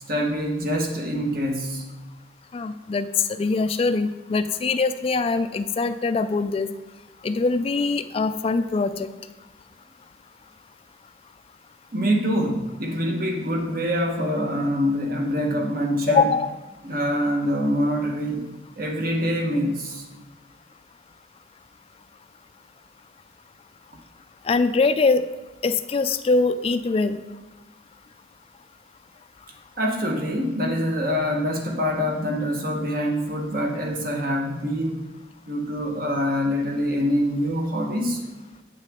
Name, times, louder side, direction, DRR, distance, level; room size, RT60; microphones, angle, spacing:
voice 1, 0.1-1.8 11.9-16.3 16.8-18.5 18.8-20.1 29.8-35.0 35.5-38.2, equal, 50° right, 2 dB, 1.2 m, -25 dB
voice 2, 2.5-3.1 3.4-6.7 7.2-9.1 16.1-16.6 24.4-25.2 25.6-27.2, left 3 dB, 30° left, 10 dB, 0.3 m, -22 dB
8.2 x 6.5 x 3.6 m, 1.1 s
head